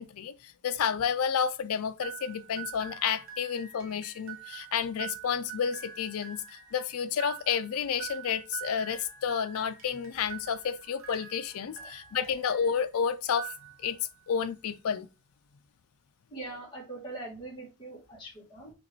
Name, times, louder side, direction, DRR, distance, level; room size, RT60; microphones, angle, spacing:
voice 1, 0.0-6.4 6.7-13.5 13.8-14.0 14.3-15.1, left 7 dB, 80° left, 0.4 m, -30 dB
sound 1, 2.0-12.9 13.2-14.1, right 10 dB, 60° right, 1.0 m, -45 dB
voice 2, 16.3-18.7, right 2 dB, 20° left, 1.9 m, -42 dB
5.1 x 3.0 x 3.1 m
head